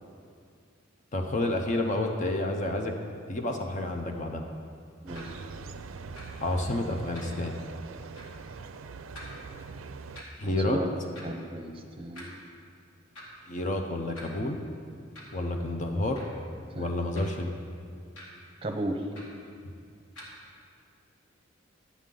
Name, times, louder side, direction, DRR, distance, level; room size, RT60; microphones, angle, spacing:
voice 1, 1.1-3.0 3.3-4.4 6.4-7.6 10.4-10.8 13.5-14.6 15.3-16.3 16.7-17.5 19.6-19.7, left 1 dB, 40° left, 4 dB, 0.6 m, -30 dB
sound 1, 5.1-5.3 6.1-6.3 7.1-7.4 8.1-8.3 9.1-9.3 10.1-10.3 11.1-11.3 12.1-12.3 13.1-13.4 14.1-14.3 15.1-15.4 16.1-16.4 17.1-17.4 18.1-18.3 19.1-19.4 20.1-20.3, left 1 dB, 80° left, 2.1 m, -46 dB
sound 2, 5.1-10.2, right 4 dB, 85° right, 0.4 m, -42 dB
voice 2, 10.4-10.9 11.2-12.4 16.7-16.9 18.6-19.0, right 1 dB, 30° right, 3 dB, 0.7 m, -34 dB
11.0 x 8.2 x 3.8 m, 2.3 s
head